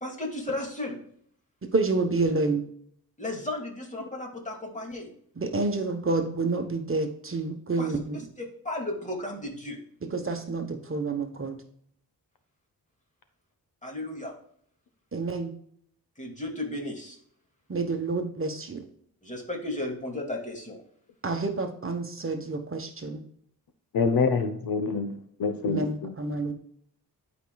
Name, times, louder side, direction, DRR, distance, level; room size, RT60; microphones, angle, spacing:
voice 1, 0.0-1.0 3.2-5.1 7.8-7.9 8.4-9.8 13.8-14.4 16.2-17.2 19.2-20.8, left 1 dB, 20° left, 0 dB, 2.5 m, -34 dB
voice 2, 1.7-2.7 5.3-8.2 10.1-11.6 15.1-15.5 17.7-18.8 21.2-23.2 25.7-26.5, right 3 dB, 35° right, 5 dB, 1.1 m, -28 dB
voice 3, 23.9-26.1, left 4 dB, 70° left, 8 dB, 1.0 m, -26 dB
12.0 x 5.1 x 2.3 m, 0.64 s
wide cardioid pair, 100°, 36 cm